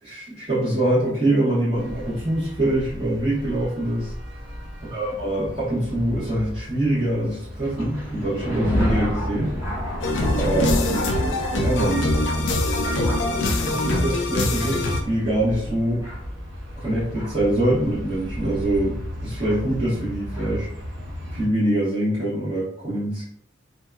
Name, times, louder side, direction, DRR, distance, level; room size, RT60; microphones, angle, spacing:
voice 1, 0.0-4.1 4.8-9.5 10.3-10.8 11.5-12.2 12.8-13.1 13.4-16.1 16.8-20.7 21.3-23.2, right 1 dB, 30° right, -12 dB, 1.0 m, -24 dB
sound 1, 1.7-21.5, equal, 65° right, 0.6 m, -36 dB
Thunder, 7.6-17.5 18.3-18.4 19.4-19.6 20.3-20.5, equal, 10° right, 1.4 m, -30 dB
sound 2, 10.0-15.0, left 2 dB, 60° left, 0.4 m, -23 dB
2.7 x 2.2 x 2.3 m, 0.67 s
head